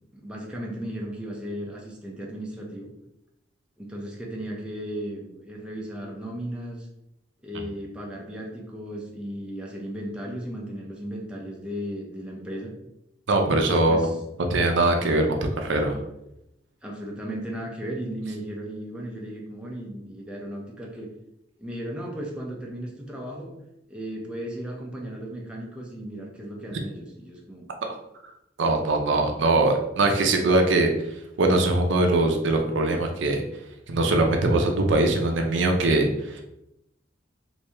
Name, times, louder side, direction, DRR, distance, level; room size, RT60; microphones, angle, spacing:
voice 1, 0.1-2.9 3.8-6.9 7.4-12.7 13.4-14.2 16.8-21.1 21.6-23.5 23.9-27.7, equal, 5° right, -2 dB, 0.5 m, -35 dB
voice 2, 13.3-14.1 14.5-16.0 27.8-27.9 28.6-30.9 31.4-33.4 33.9-36.4, right 2 dB, 75° right, 3 dB, 0.5 m, -22 dB
3.0 x 2.6 x 3.3 m, 0.83 s
head